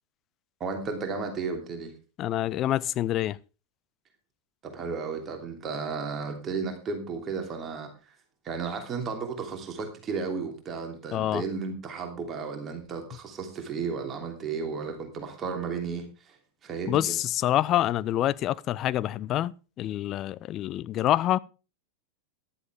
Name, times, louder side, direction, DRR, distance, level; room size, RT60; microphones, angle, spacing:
voice 1, 0.6-1.9 4.6-8.2 8.4-16.4 16.6-17.2, right 5 dB, 25° right, 3.0 m, -34 dB
voice 2, 2.2-3.4 11.1-11.4 16.9-19.5 19.8-21.4, left 13 dB, 35° left, 0.5 m, -26 dB
14.0 x 11.5 x 3.5 m
figure-of-eight pair, 90°, 0 cm